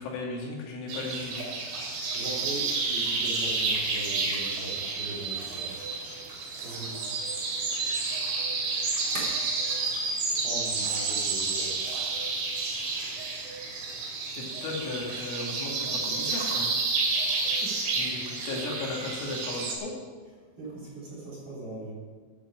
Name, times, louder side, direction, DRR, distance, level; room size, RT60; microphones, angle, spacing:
voice 1, 0.0-1.5 14.3-16.7 18.0-20.0, left 3 dB, 85° left, -1 dB, 4.8 m, -36 dB
sound 1, 0.9-19.7, right 4 dB, 60° right, 4.4 m, -30 dB
voice 2, 2.1-5.7 6.6-7.1 7.5-7.6 9.1-9.3 10.4-11.8 17.4-17.7 20.6-21.9, right 2 dB, 35° right, -6 dB, 3.8 m, -39 dB
12.0 x 9.3 x 7.6 m, 1.5 s
omnidirectional pair, 5.5 m